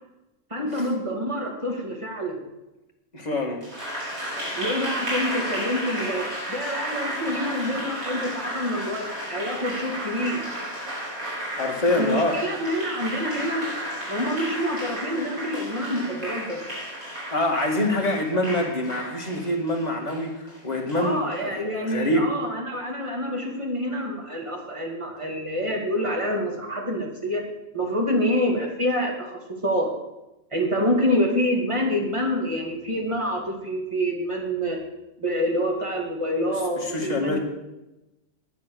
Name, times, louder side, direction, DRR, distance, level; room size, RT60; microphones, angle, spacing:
voice 1, 0.5-2.4 4.6-10.4 12.0-13.7 14.1-16.6 21.0-27.4 27.7-29.9 30.5-34.8 35.2-37.4, equal, 20° right, 0 dB, 2.6 m, -27 dB
voice 2, 3.1-3.7 11.6-12.4 17.0-22.3 36.8-37.4, left 1 dB, 30° left, 0 dB, 2.1 m, -25 dB
Applause, 3.6-21.4, equal, 75° right, 5.4 m, -33 dB
11.0 x 10.0 x 6.4 m, 0.97 s
omnidirectional pair, 1.5 m